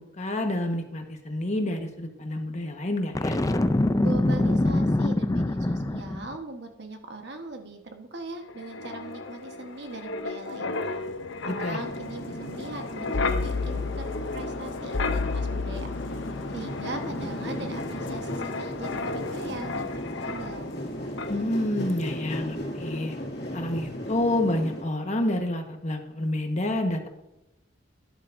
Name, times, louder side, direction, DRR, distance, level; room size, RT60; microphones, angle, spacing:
voice 1, 0.0-3.4 11.4-11.8 21.3-23.2 23.5-27.1, left 1 dB, 40° left, 4 dB, 1.3 m, -28 dB
Boom, 3.2-6.4, left 1 dB, 20° left, 0.5 m, -24 dB
voice 2, 3.9-11.0 11.4-15.9 16.5-20.7, right 2 dB, 65° right, 5 dB, 1.3 m, -40 dB
Wind, 8.5-20.9 21.2-21.4, left 3 dB, 90° left, 0.7 m, -33 dB
sound 1, 11.8-24.8, equal, 60° left, 2.4 m, -36 dB
12.5 x 10.5 x 2.7 m, 0.92 s
head